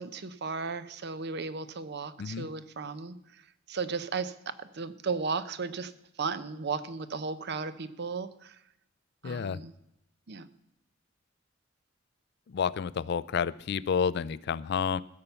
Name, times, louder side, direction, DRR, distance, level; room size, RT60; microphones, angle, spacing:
voice 1, 0.0-3.2 3.7-5.9 6.2-8.6 9.2-9.7 10.3-10.5, right 4 dB, 55° right, 13 dB, 0.7 m, -35 dB
voice 2, 9.2-9.6 12.5-15.0, left 6 dB, 55° left, 19 dB, 0.4 m, -30 dB
15.0 x 7.0 x 6.9 m, 0.83 s
head